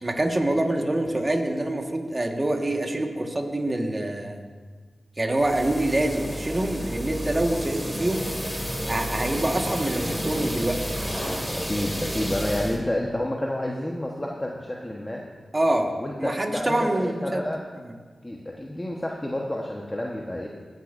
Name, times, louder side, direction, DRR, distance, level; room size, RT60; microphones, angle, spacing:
voice 1, 0.0-4.4 5.2-8.2 8.9-10.8 15.5-15.9 16.2-17.5, right 1 dB, 35° right, 3 dB, 1.6 m, -25 dB
sound 1, 5.3-12.8, equal, 5° right, 2.5 m, -31 dB
voice 2, 11.5-15.2 16.0-17.6 18.2-20.5, left 1 dB, 20° left, -2 dB, 1.2 m, -29 dB
18.0 x 9.2 x 2.7 m, 1.5 s
cardioid pair, 40°, 0 cm